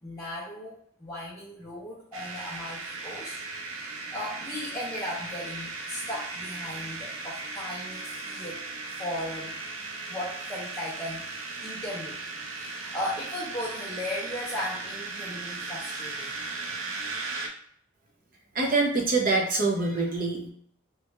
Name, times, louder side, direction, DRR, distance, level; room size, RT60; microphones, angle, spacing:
voice 1, 0.0-8.6 9.0-9.6 10.1-11.3 11.6-12.2 12.5-16.5, left 1 dB, 15° left, -7 dB, 0.6 m, -37 dB
sound 1, 2.1-17.5, right 3 dB, 90° right, 0.6 m, -37 dB
voice 2, 18.5-20.5, right 3 dB, 45° right, 0 dB, 0.7 m, -25 dB
3.1 x 2.5 x 3.2 m, 0.63 s
head